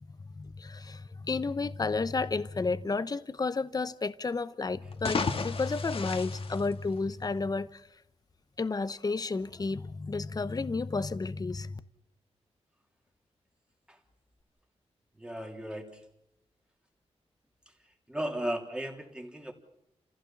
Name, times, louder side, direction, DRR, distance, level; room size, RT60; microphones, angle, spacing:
voice 1, 0.3-7.9 8.6-11.8, left 4 dB, 35° left, 0.9 m, -32 dB
sound 1, 4.8-7.4, left 4 dB, 55° left, 1.6 m, -34 dB
voice 2, 15.2-16.0 18.1-19.5, right 1 dB, 10° right, 3.2 m, -36 dB
29.5 x 15.5 x 7.2 m
wide cardioid pair, 110°, 12 cm